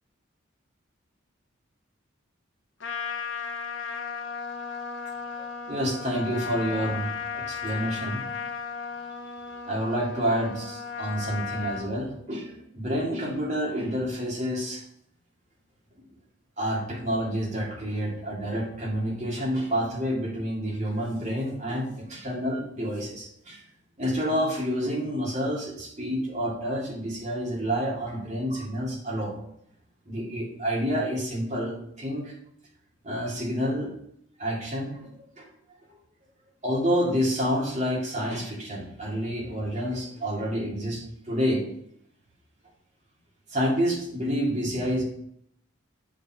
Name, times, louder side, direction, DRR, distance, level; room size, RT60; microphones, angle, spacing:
Trumpet, 2.8-11.9, left 5 dB, 65° left, 0.8 m, -35 dB
voice 1, 5.7-8.2 9.6-14.8 16.6-23.6 24.0-29.3 30.1-32.3 33.0-33.9 34.4-35.5 36.6-41.6 43.5-45.0, equal, 35° right, -3 dB, 2.1 m, -28 dB
8.0 x 5.3 x 4.5 m, 0.71 s
head